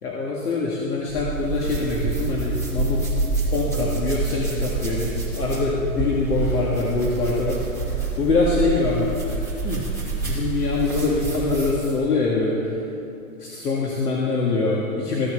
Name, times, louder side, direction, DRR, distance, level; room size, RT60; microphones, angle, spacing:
voice 1, 0.0-3.1 3.5-7.6 8.2-9.8 10.2-12.7 13.4-15.3, left 3 dB, 85° left, -3 dB, 2.0 m, -24 dB
sound 1, 1.1-12.0, right 4 dB, 5° left, 2.7 m, -27 dB
14.5 x 6.8 x 7.9 m, 2.8 s
hypercardioid pair, 145°, 45 cm